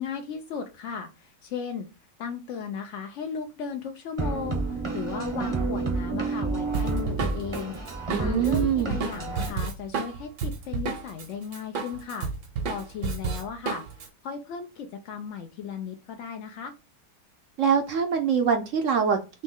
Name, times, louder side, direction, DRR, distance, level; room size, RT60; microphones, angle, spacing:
voice 1, 0.0-1.9 2.2-7.8 8.2-12.3 12.6-16.7, left 6 dB, 70° left, 4 dB, 0.7 m, -36 dB
sound 1, 4.2-9.5, right 3 dB, 25° right, 0.6 m, -30 dB
Drum kit, 6.7-11.3 11.5-14.1, right 5 dB, 80° right, 1.7 m, -31 dB
voice 2, 8.1-9.0 17.6-19.4, right 7 dB, 65° right, 5 dB, 0.8 m, -24 dB
4.1 x 3.1 x 3.6 m, 0.29 s
omnidirectional pair, 1.8 m